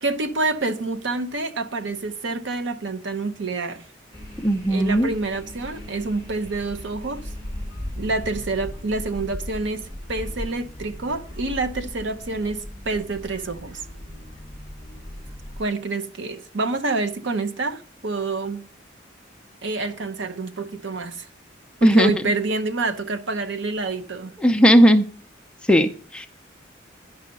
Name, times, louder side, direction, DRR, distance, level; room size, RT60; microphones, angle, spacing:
voice 1, 0.0-3.8 4.7-7.3 8.0-13.8 15.6-18.6 19.6-21.3 21.8-24.3, right 3 dB, 70° right, 0.8 m, -27 dB
sound 1, 4.1-15.6, left 1 dB, 20° right, 1.6 m, -37 dB
voice 2, 4.4-5.1 21.8-22.1 24.4-25.0 25.7-26.3, equal, 5° left, 0.5 m, -16 dB
10.5 x 5.6 x 5.2 m
head